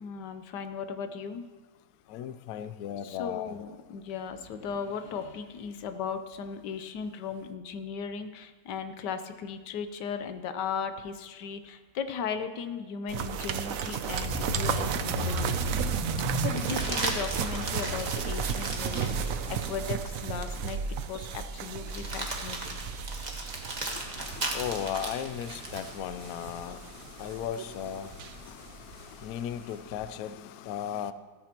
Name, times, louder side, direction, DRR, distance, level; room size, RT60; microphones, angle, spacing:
voice 1, 0.0-1.4 3.0-15.7 16.4-20.8 21.1-22.8, left 6 dB, 65° left, 1.3 m, -37 dB
voice 2, 2.1-3.6 23.9-26.8 27.2-28.1 28.5-28.6 29.2-31.1, left 9 dB, 90° left, 0.8 m, -36 dB
sound 1, 13.1-29.2 29.6-29.7, right 7 dB, 75° right, 0.8 m, -34 dB
sound 2, 14.1-19.9 20.2-20.5 20.8-20.9, equal, 45° left, 4.8 m, -35 dB
sound 3, 16.5-19.9 20.5-20.6 21.8-25.9 28.1-29.0, right 2 dB, 25° right, 1.3 m, -37 dB
14.0 x 14.0 x 2.9 m
omnidirectional pair, 2.1 m